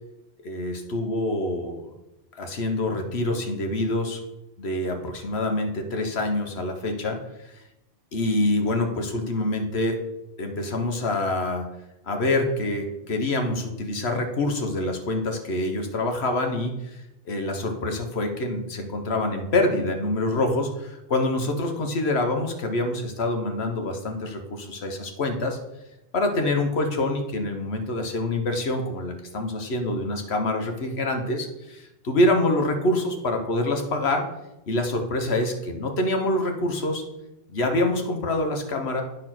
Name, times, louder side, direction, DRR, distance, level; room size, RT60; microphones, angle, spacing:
voice 1, 0.4-1.9 2.4-4.2 4.6-7.2 8.1-10.0 10.4-11.7 12.0-16.8 17.3-25.6 26.1-34.2 34.7-37.0 37.5-39.0, left 2 dB, 70° left, 4 dB, 1.3 m, -26 dB
8.9 x 4.3 x 5.9 m, 0.92 s
omnidirectional pair, 1.1 m